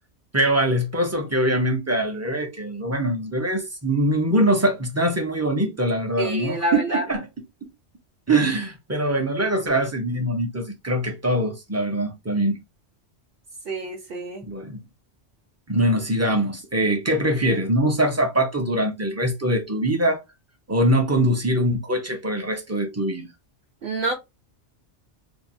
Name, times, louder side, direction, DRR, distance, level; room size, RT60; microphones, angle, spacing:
voice 1, 0.3-7.3 8.3-12.6 14.4-14.8 15.7-20.2 20.7-23.3, right 1 dB, 25° right, 0.3 m, -23 dB
voice 2, 6.2-7.0 13.7-14.4 23.8-24.1, right 2 dB, 55° right, 0.8 m, -27 dB
2.7 x 2.1 x 2.6 m
omnidirectional pair, 1.2 m